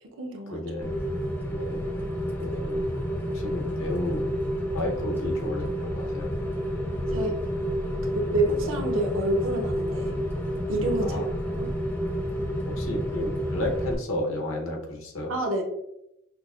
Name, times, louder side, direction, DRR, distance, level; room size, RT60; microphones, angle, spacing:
voice 1, 0.0-0.6 7.1-7.4 8.1-10.2 10.7-11.2 11.5-11.7 15.3-15.6, right 1 dB, 80° right, 2 dB, 0.7 m, -28 dB
voice 2, 0.5-0.9 1.5-1.8 2.4-2.9 3.3-4.3 4.7-6.3 11.0-11.3 12.7-15.3, left 1 dB, 85° left, 1 dB, 0.8 m, -32 dB
Rain, 0.8-13.9, equal, 10° left, 0.3 m, -30 dB
5.9 x 2.0 x 2.4 m, 0.84 s
head